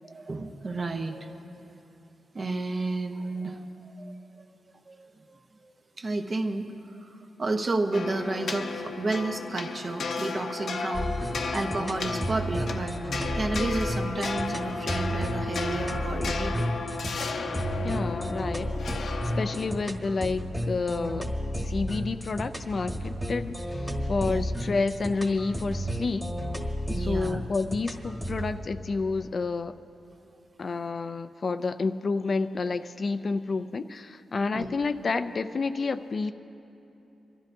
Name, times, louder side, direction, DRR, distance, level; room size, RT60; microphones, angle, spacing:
voice 1, 0.0-1.6 2.3-13.0 13.3-16.7 19.5-19.7 24.3-24.4 26.9-27.4 34.5-34.7, right 2 dB, 35° right, 5 dB, 0.9 m, -32 dB
Khim (Thai Stringed Instrument), 7.9-19.9, left 4 dB, 65° left, 0.8 m, -34 dB
sound 1, 10.9-28.5, equal, ahead, 1.4 m, -32 dB
voice 2, 17.8-18.7 19.4-21.3 21.5-26.3 26.9-29.7 30.6-36.3, left 4 dB, 40° left, 10 dB, 0.4 m, -29 dB
25.5 x 13.0 x 2.7 m, 2.9 s
wide cardioid pair, 110°, 0 cm